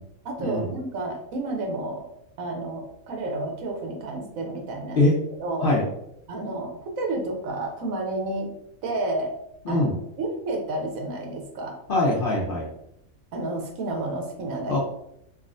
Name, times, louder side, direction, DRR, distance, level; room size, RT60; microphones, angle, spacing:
voice 1, 0.2-2.1 2.4-5.1 5.4-5.7 6.3-8.5 8.8-9.3 9.7-9.9 10.2-11.8 13.3-14.8, right 2 dB, 75° right, 2 dB, 1.1 m, -30 dB
voice 2, 11.9-12.7 14.7-14.8, left 2 dB, 60° left, -3 dB, 0.6 m, -22 dB
3.6 x 2.3 x 2.4 m, 0.77 s
omnidirectional pair, 1.4 m